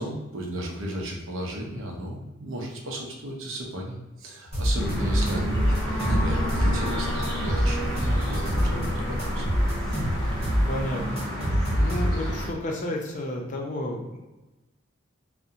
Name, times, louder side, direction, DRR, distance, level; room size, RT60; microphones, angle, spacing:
voice 1, 0.0-9.5 9.9-10.0, right 1 dB, 75° right, 0 dB, 0.6 m, -34 dB
sound 1, 4.5-6.9 7.2-8.9 9.2-12.4, equal, 30° right, 1.3 m, -25 dB
sound 2, 4.5-11.2, equal, 55° right, 1.0 m, -34 dB
sound 3, 4.8-12.5, equal, ahead, 0.9 m, -31 dB
voice 2, 8.7-9.1 10.7-14.2, left 1 dB, 40° left, 0 dB, 0.4 m, -32 dB
2.5 x 2.1 x 2.7 m, 1.1 s
head